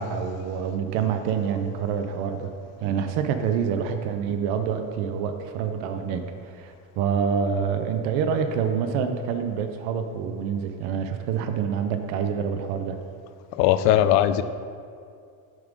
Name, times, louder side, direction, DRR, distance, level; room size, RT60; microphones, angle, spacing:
voice 1, 0.0-2.5 2.8-13.0, right 7 dB, 80° right, 7 dB, 0.7 m, -27 dB
voice 2, 13.5-14.4, left 12 dB, 75° left, 12 dB, 0.6 m, -19 dB
9.4 x 3.8 x 5.2 m, 2.3 s
cardioid pair, 115°, 44 cm